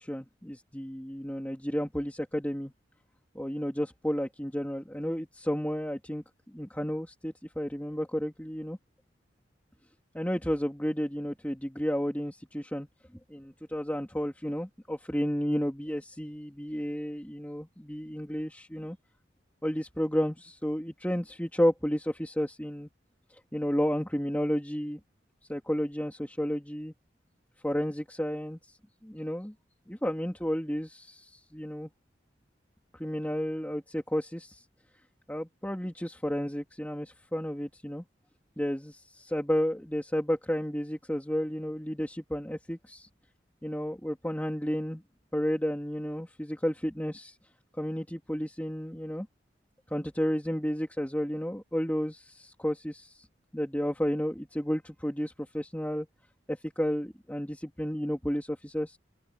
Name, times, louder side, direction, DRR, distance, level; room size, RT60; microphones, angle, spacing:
voice 1, 0.0-2.7 3.3-6.2 6.5-8.8 10.1-12.9 13.3-19.0 19.6-22.9 23.3-25.0 25.5-26.9 27.6-28.8 29.0-29.5 29.9-31.9 32.9-34.6 35.3-38.0 38.6-43.1 43.6-45.0 45.3-47.4 47.8-49.3 49.9-53.3 53.5-56.1 56.5-59.0, equal, 10° left, 2.9 m, -32 dB
open air
head